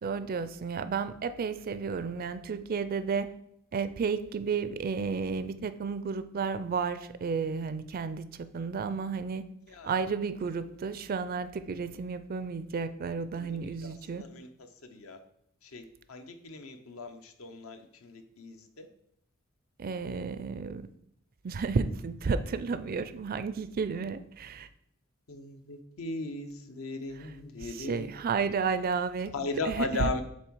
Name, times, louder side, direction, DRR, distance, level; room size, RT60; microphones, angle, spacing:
voice 1, 0.0-3.3 3.7-9.4 9.8-14.2 19.8-20.9 21.4-24.7 27.1-29.3 29.6-30.1, right 5 dB, 45° right, 12 dB, 0.4 m, -32 dB
voice 2, 13.4-14.5 14.9-15.2 15.7-18.9 25.3-28.1 29.3-30.2, left 3 dB, 75° left, 7 dB, 0.8 m, -37 dB
7.4 x 3.5 x 4.6 m, 0.75 s
head